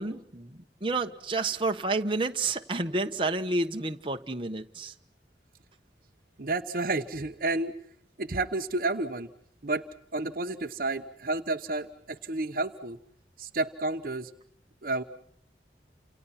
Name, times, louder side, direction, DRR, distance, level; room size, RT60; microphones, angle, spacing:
voice 1, 0.0-4.9, right 3 dB, 30° right, 5 dB, 1.3 m, -30 dB
voice 2, 6.4-7.7 8.2-9.3 9.6-9.8 10.1-13.0 13.4-14.3 14.8-15.0, right 2 dB, 50° right, 8 dB, 1.0 m, -30 dB
29.0 x 28.0 x 5.8 m, 0.66 s
head